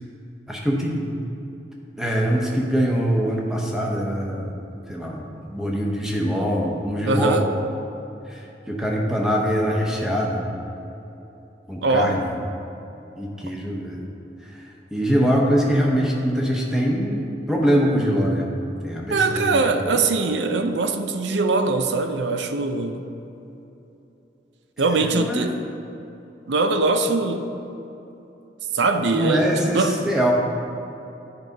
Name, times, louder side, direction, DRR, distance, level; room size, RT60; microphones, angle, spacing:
voice 1, 0.5-1.1 2.0-4.5 4.9-7.4 8.3-10.5 11.7-12.3 13.2-14.0 14.5-18.5 18.8-20.1 24.9-25.5 29.1-30.3, equal, 5° right, -2 dB, 0.8 m, -23 dB
voice 2, 7.1-7.4 11.8-12.2 19.1-23.1 24.8-25.6 26.5-27.4 28.7-30.0, right 3 dB, 85° right, 7 dB, 0.5 m, -22 dB
9.8 x 4.8 x 4.0 m, 3.0 s
head